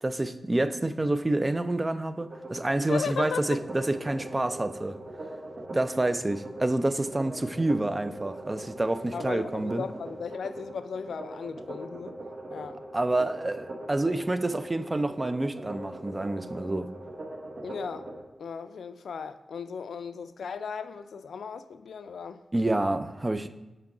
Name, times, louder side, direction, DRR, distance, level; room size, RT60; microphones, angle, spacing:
voice 1, 0.0-5.0 5.7-9.8 12.9-16.9 22.5-23.5, right 2 dB, 20° right, 0.3 m, -28 dB
sound 1, 2.2-18.2, right 1 dB, 40° right, 0.9 m, -41 dB
voice 2, 2.8-3.4 9.1-12.2 12.5-12.8 17.6-18.1 18.4-22.4, left 6 dB, 85° left, 0.3 m, -36 dB
5.9 x 4.5 x 4.9 m
wide cardioid pair, 145°, 0 cm